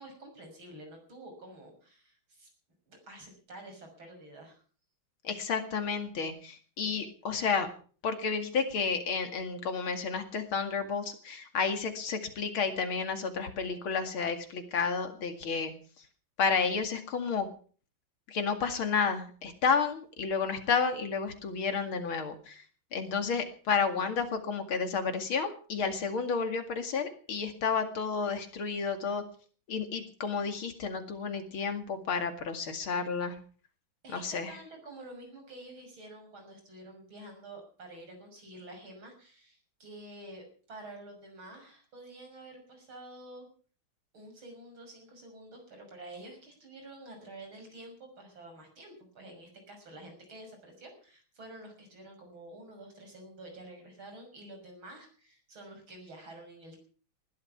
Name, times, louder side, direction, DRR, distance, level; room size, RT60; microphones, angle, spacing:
voice 1, 0.0-2.5 2.9-4.6 34.0-43.5 44.1-56.8, right 1 dB, 75° right, 3 dB, 7.1 m, -49 dB
voice 2, 5.2-7.7 8.0-15.7 16.4-17.5 18.3-22.6 22.9-29.2 29.7-33.4 34.1-34.6, left 5 dB, 80° left, 7 dB, 3.0 m, -31 dB
19.5 x 12.0 x 5.9 m, 0.43 s
omnidirectional pair, 2.2 m